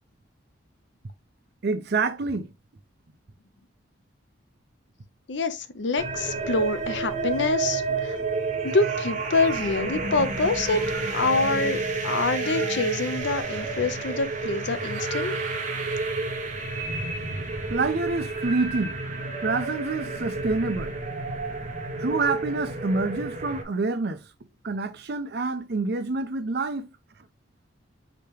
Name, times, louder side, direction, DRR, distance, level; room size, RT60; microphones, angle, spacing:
voice 1, 1.6-2.5 17.7-19.0 19.4-21.0 22.0-24.2 24.6-26.9, right 3 dB, 55° right, 0.6 m, -27 dB
voice 2, 5.3-8.2 8.6-10.8 11.1-15.3, left 3 dB, 70° left, 0.6 m, -26 dB
sound 1, 6.0-23.6, right 3 dB, 40° right, 1.1 m, -30 dB
sound 2, 8.6-9.9 10.5-11.6 12.3-13.7 14.8-15.9, right 4 dB, 85° right, 1.4 m, -41 dB
5.0 x 2.9 x 3.3 m
head